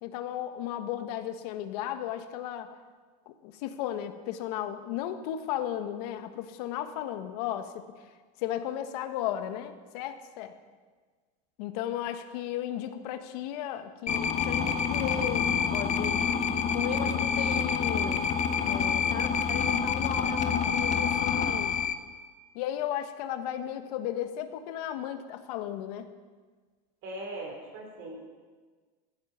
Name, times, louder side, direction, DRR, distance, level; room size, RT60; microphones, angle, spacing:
voice 1, 0.0-2.7 3.3-7.9 8.4-10.5 11.6-16.2 16.7-18.3 18.6-21.8 22.5-26.1, left 11 dB, 65° left, 8 dB, 1.4 m, -35 dB
sound 1, 14.1-21.9, left 6 dB, 35° left, 1.3 m, -27 dB
voice 2, 27.0-28.2, right 1 dB, 50° right, -1 dB, 4.7 m, -39 dB
15.5 x 14.5 x 5.9 m, 1.4 s
supercardioid pair, 120°, 21 cm